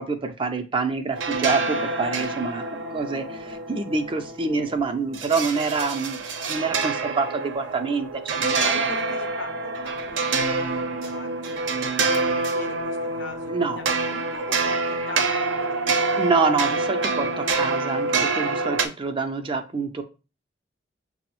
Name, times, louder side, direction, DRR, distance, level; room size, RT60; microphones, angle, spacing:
voice 1, 0.0-6.2 6.5-8.9 13.5-13.8 16.2-20.0, right 4 dB, 30° right, 7 dB, 0.4 m, -26 dB
sound 1, 1.1-18.9, right 3 dB, 80° right, 0.5 m, -26 dB
voice 2, 8.3-16.0, left 2 dB, 85° left, 4 dB, 0.8 m, -41 dB
5.8 x 2.0 x 2.9 m, 0.31 s
head